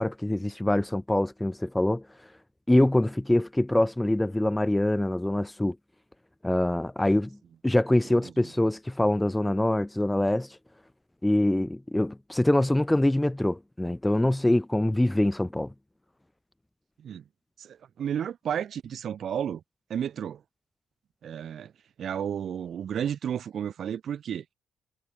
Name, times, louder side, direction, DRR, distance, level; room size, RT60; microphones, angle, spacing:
voice 1, 0.0-2.1 2.7-5.8 6.4-7.4 7.6-10.6 11.2-15.7, left 1 dB, 10° left, 0.5 m, -24 dB
voice 2, 8.1-8.5 17.0-17.2 17.6-19.6 19.9-20.4 21.2-21.7 22.0-24.4, right 9 dB, 60° right, 2.7 m, -32 dB
hypercardioid pair, 55°, 0 cm